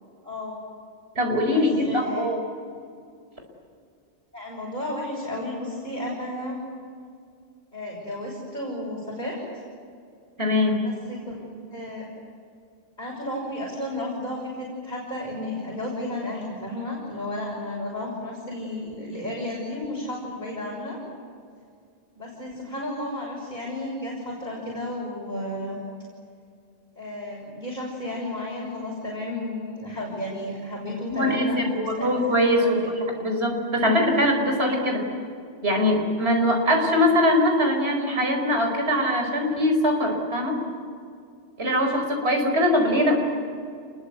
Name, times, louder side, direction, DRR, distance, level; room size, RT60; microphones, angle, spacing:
voice 1, 0.2-0.6 1.5-2.3 4.3-6.6 7.7-9.4 10.8-11.4 11.7-12.1 13.0-21.0 22.1-25.8 26.9-32.1 32.4-32.7 42.7-42.8, left 1 dB, 40° left, -5 dB, 6.6 m, -33 dB
voice 2, 1.2-2.4 10.4-10.9 31.1-35.0 35.6-40.6 41.6-43.2, left 1 dB, 60° right, 3 dB, 5.2 m, -22 dB
27.5 x 22.0 x 8.2 m, 2.3 s
omnidirectional pair, 1.2 m